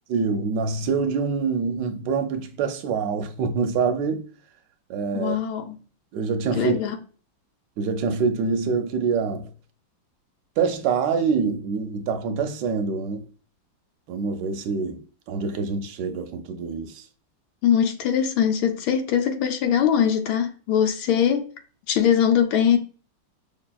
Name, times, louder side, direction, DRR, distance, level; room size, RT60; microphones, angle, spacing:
voice 1, 0.1-4.3 4.9-5.4 6.1-6.8 7.8-9.5 10.6-13.3 14.1-17.0, right 5 dB, 75° right, 1.2 m, -25 dB
voice 2, 5.1-5.8 6.6-6.9 17.6-21.5 21.9-22.8, left 8 dB, 85° left, 1.4 m, -21 dB
5.4 x 2.7 x 2.2 m
omnidirectional pair, 2.1 m